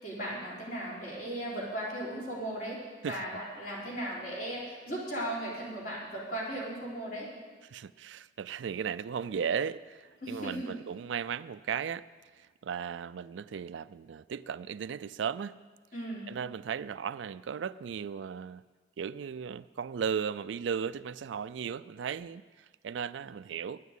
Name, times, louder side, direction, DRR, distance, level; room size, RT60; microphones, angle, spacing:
voice 1, 0.0-2.8 3.0-7.3 10.2-10.7 15.9-16.3, right 1 dB, 45° left, -6 dB, 4.0 m, -37 dB
voice 2, 7.7-12.1 12.4-15.6 16.3-18.6 19.0-23.8, right 7 dB, 85° right, 16 dB, 0.4 m, -36 dB
10.0 x 9.4 x 8.1 m, 1.4 s
head